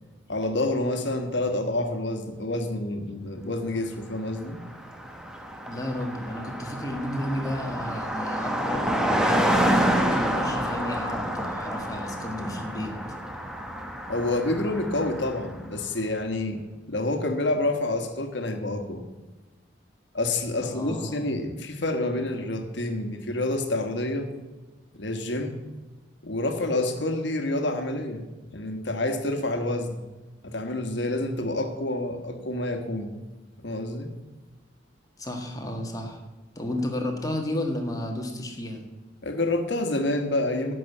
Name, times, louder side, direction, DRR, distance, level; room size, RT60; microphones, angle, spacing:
voice 1, 0.3-4.6 14.1-16.6 16.9-19.0 20.1-24.3 24.9-25.6 26.2-30.0 30.4-33.1 33.6-34.1 39.2-40.8, left 2 dB, 65° left, 6 dB, 1.4 m, -28 dB
Car passing by, 4.3-4.4 4.6-15.6, equal, 5° right, 1.0 m, -28 dB
voice 2, 5.6-12.9 20.6-21.3 35.2-36.2 36.5-38.8, left 1 dB, 20° left, 2 dB, 1.5 m, -32 dB
11.0 x 6.2 x 8.2 m, 1.2 s
head